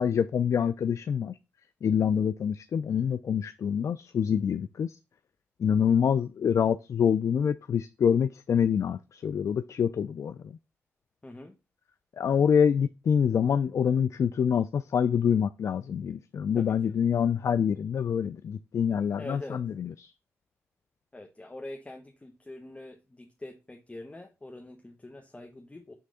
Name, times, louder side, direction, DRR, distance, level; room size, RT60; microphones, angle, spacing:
voice 1, 0.0-1.4 1.8-5.0 5.6-10.6 12.2-20.1, left 7 dB, 65° left, 0.4 m, -26 dB
voice 2, 11.2-11.5 16.6-16.9 19.2-19.6 21.1-25.9, left 2 dB, 25° left, 1.0 m, -44 dB
6.3 x 3.4 x 5.5 m
cardioid pair, 60°, 6 cm